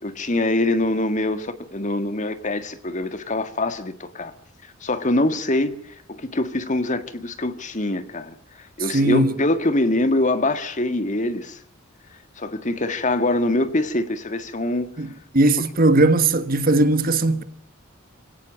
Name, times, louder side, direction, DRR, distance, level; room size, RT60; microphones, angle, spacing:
voice 1, 0.0-4.3 4.8-5.8 6.1-11.6 12.4-14.9, left 2 dB, 40° left, 1.8 m, -24 dB
voice 2, 8.8-9.3 15.0-15.1 15.3-17.4, right 2 dB, 45° right, 1.5 m, -18 dB
26.0 x 17.5 x 8.7 m
head